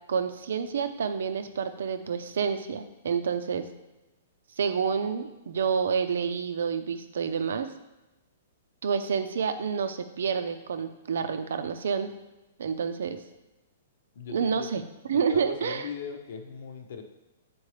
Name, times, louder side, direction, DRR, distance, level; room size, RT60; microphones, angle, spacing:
voice 1, 0.1-3.7 4.6-7.7 8.8-12.1 12.6-13.2 14.3-14.8 15.1-15.9, right 6 dB, 80° right, 9 dB, 0.6 m, -28 dB
voice 2, 14.1-14.7 15.1-17.0, left 6 dB, 65° left, 5 dB, 1.0 m, -39 dB
8.6 x 4.4 x 3.3 m, 1.0 s
hypercardioid pair, 150°, 0 cm